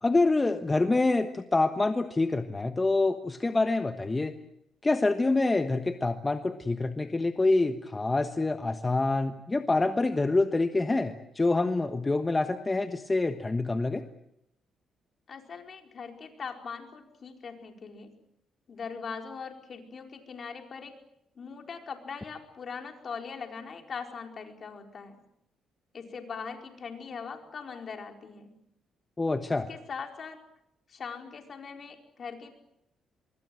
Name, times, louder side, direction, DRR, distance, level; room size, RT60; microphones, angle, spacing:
voice 1, 0.0-4.3 4.8-14.0 29.2-29.7, left 2 dB, 20° left, 8 dB, 1.3 m, -26 dB
voice 2, 15.3-18.1 18.7-21.0 21.3-25.2 25.9-28.5 29.7-30.4 30.9-32.6, left 5 dB, 50° left, 4 dB, 4.6 m, -41 dB
25.0 x 22.5 x 7.8 m, 0.79 s
cardioid pair, 90°, 0 cm